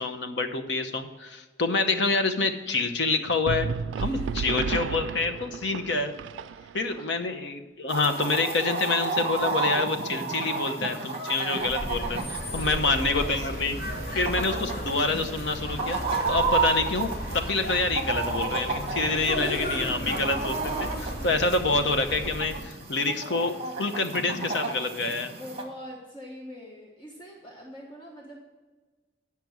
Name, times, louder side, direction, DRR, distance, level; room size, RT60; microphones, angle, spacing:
voice 1, 0.0-3.7 4.0-6.1 6.7-13.8 14.1-16.0 16.3-23.5 23.8-25.3, left 3 dB, 75° left, 7 dB, 0.8 m, -27 dB
sound 1, 3.5-7.0, right 6 dB, 90° right, 0.3 m, -32 dB
voice 2, 4.0-4.6 6.4-7.0 12.5-13.3 21.2-21.3 25.4-28.4, equal, 25° left, -2 dB, 1.1 m, -44 dB
Chicken rooster, 7.9-25.6, right 4 dB, 30° right, 1.3 m, -32 dB
sound 2, 11.6-22.7, equal, 50° left, 3.0 m, -34 dB
9.4 x 6.0 x 6.1 m, 1.3 s
head